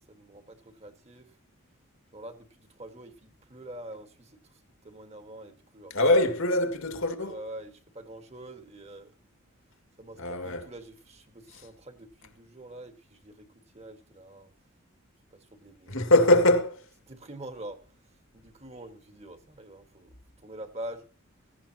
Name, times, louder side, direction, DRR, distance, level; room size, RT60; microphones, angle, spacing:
voice 1, 0.1-1.4 2.1-6.0 7.2-9.1 10.0-13.5 13.7-14.5 15.3-16.2 17.0-20.1 20.4-21.0, right 1 dB, 30° right, 1.6 m, -45 dB
voice 2, 5.9-7.4 10.2-10.6 15.9-16.8, left 1 dB, 70° left, 2.2 m, -22 dB
16.5 x 16.0 x 2.9 m
head